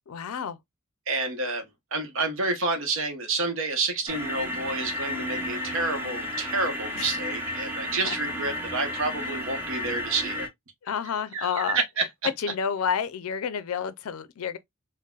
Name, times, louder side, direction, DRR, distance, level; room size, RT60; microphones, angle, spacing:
voice 1, 0.1-0.6 7.0-7.1 8.0-8.2 10.8-11.8 12.4-14.6, left 7 dB, 85° left, 0.4 m, -30 dB
voice 2, 1.1-10.5 11.3-12.1, right 3 dB, 65° right, 0.8 m, -29 dB
sound 1, 4.1-10.5, left 1 dB, 10° right, 0.6 m, -33 dB
3.9 x 2.1 x 2.2 m
head